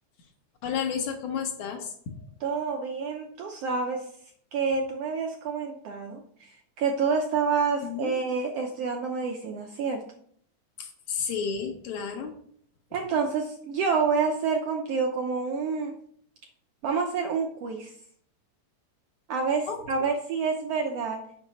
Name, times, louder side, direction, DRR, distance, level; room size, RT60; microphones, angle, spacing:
voice 1, 0.6-2.2 7.8-8.1 10.8-12.3 19.7-19.8, left 7 dB, 65° left, 3 dB, 2.4 m, -32 dB
voice 2, 2.4-4.1 4.5-10.0 12.9-15.9 16.8-17.9 19.3-21.2, right 5 dB, 75° right, 3 dB, 1.4 m, -28 dB
7.4 x 6.0 x 5.5 m, 0.63 s
omnidirectional pair, 3.8 m